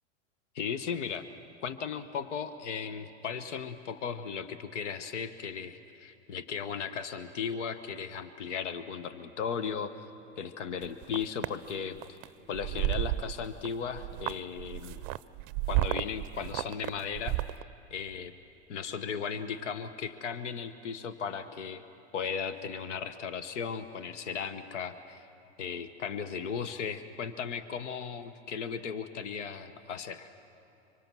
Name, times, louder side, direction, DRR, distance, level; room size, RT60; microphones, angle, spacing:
voice 1, 0.5-1.3 1.6-10.0 10.4-12.2 12.5-15.0 15.7-17.6 17.9-18.3 18.7-21.8 22.1-25.3 25.6-30.3, left 6 dB, 80° left, 11 dB, 1.2 m, -36 dB
sound 1, 10.8-11.5 12.0-12.3 12.5-13.7 13.9-17.6, right 17 dB, 45° right, 0.5 m, -32 dB
25.5 x 24.5 x 6.2 m, 2.9 s
hypercardioid pair, 115°, 35 cm